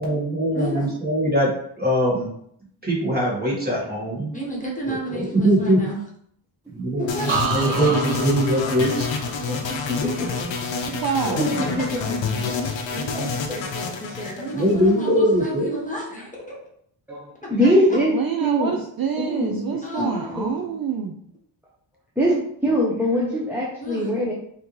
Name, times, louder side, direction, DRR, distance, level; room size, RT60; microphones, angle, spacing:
voice 1, 0.0-2.3 2.8-4.3 4.9-5.8 6.7-9.1 11.3-11.8 14.5-15.8, right 1 dB, 20° right, -4 dB, 1.6 m, -22 dB
voice 2, 0.5-0.9 4.3-6.0 7.0-8.1 10.0-10.4 12.9-13.3 14.4-16.6 17.6-18.0 19.8-20.7 22.2-22.4 23.8-24.1, equal, 15° left, -4 dB, 1.2 m, -32 dB
sound 1, 7.1-15.2, left 4 dB, 65° left, 0.7 m, -28 dB
sound 2, 7.3-11.1 11.5-11.9, right 5 dB, 85° right, 1.0 m, -31 dB
voice 3, 9.5-10.3 11.4-12.7 13.1-13.6 14.0-14.4 17.1-18.1 18.4-18.8 19.2-20.1 20.4-20.5 22.2-22.3 22.6-24.3, equal, 5° right, -6 dB, 0.7 m, -23 dB
voice 4, 10.9-11.4 18.1-21.2, right 7 dB, 50° right, 3 dB, 0.4 m, -27 dB
5.6 x 2.9 x 3.1 m, 0.68 s
wide cardioid pair, 150°, 48 cm